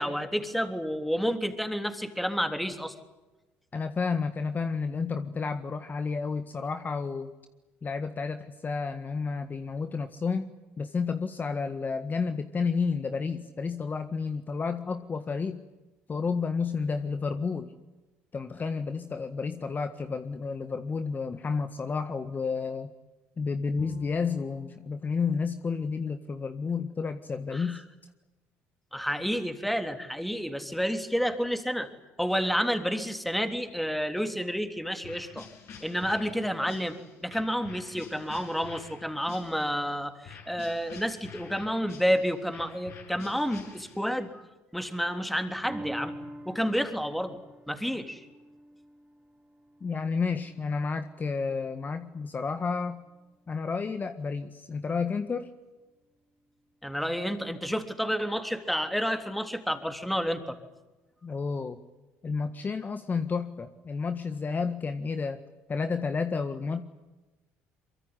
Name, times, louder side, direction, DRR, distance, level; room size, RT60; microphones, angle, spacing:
voice 1, 0.0-2.9 27.5-27.8 28.9-31.9 32.2-35.5 35.8-37.0 37.2-44.5 44.7-46.1 46.4-47.4 47.7-48.2 56.8-60.6, equal, ahead, 7 dB, 3.4 m, -30 dB
voice 2, 3.7-7.3 7.8-15.6 16.1-17.7 18.3-22.9 23.4-27.8 49.8-53.0 53.5-55.5 61.2-61.8 62.2-65.4 65.7-66.8, left 5 dB, 35° left, 9 dB, 1.7 m, -31 dB
Bowed string instrument, 23.8-26.9, left 9 dB, 85° left, 6.4 m, -51 dB
sound 1, 35.0-39.8 40.3-44.2, left 6 dB, 60° left, 7.9 m, -48 dB
sound 2, 45.7-52.3 52.8-52.9, right 1 dB, 20° right, 3.7 m, -46 dB
24.0 x 23.0 x 9.9 m, 1.1 s
supercardioid pair, 75°, 6 cm